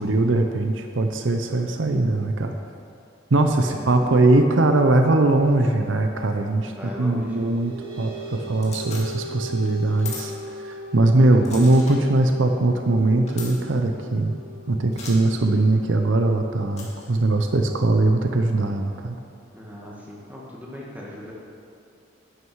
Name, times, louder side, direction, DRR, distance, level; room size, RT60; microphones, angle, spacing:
voice 1, 0.0-2.6 3.3-6.7 7.0-14.4 14.7-19.2, right 2 dB, 75° right, 5 dB, 0.7 m, -21 dB
voice 2, 3.7-4.2 6.6-7.5 19.5-21.3, left 1 dB, 10° right, -5 dB, 2.1 m, -38 dB
sound 1, 7.2-18.1, equal, 50° right, 2.6 m, -40 dB
sound 2, 8.6-9.0 10.0-10.3 11.5-12.0 13.3-13.5 14.9-15.1 16.7-17.1, left 4 dB, 35° left, 2.1 m, -37 dB
11.0 x 9.6 x 4.7 m, 2.4 s
head